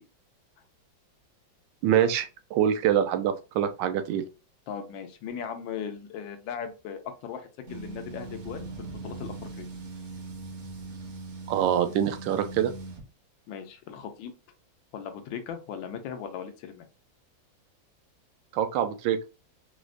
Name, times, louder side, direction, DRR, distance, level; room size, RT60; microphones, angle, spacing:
voice 1, 1.8-4.2 11.5-12.7 18.5-19.2, right 9 dB, 80° right, 1.2 m, -25 dB
voice 2, 4.7-9.7 13.5-14.3 14.9-16.9, left 7 dB, 85° left, 1.4 m, -38 dB
sound 1, 7.7-13.0, right 3 dB, 55° right, 0.9 m, -40 dB
4.6 x 2.1 x 2.5 m
omnidirectional pair, 2.0 m